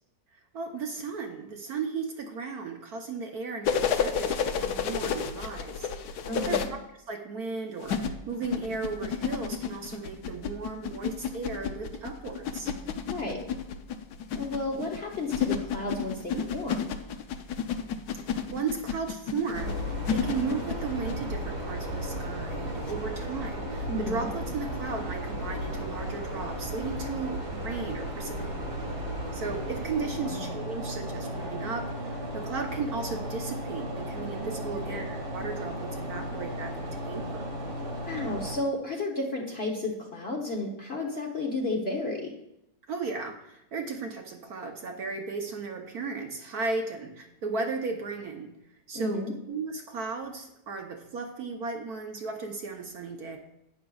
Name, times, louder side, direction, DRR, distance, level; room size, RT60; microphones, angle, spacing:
voice 1, 0.5-6.8 7.1-12.7 15.9-16.5 18.3-28.6 29.3-37.4 42.9-48.5 48.9-49.2 49.5-53.4, right 4 dB, 60° right, 3 dB, 1.3 m, -35 dB
sound 1, 3.6-6.7 7.8-21.2 22.9-23.0, left 7 dB, 65° left, 1.1 m, -31 dB
voice 2, 6.3-6.7 13.1-13.4 14.3-16.9 23.9-24.3 30.2-30.5 34.7-35.0 38.0-42.3 48.9-49.3, left 2 dB, 40° left, -1 dB, 1.1 m, -32 dB
sound 2, 19.5-38.6, equal, 85° right, 3.3 m, -35 dB
11.0 x 9.2 x 2.4 m, 0.84 s
omnidirectional pair, 2.0 m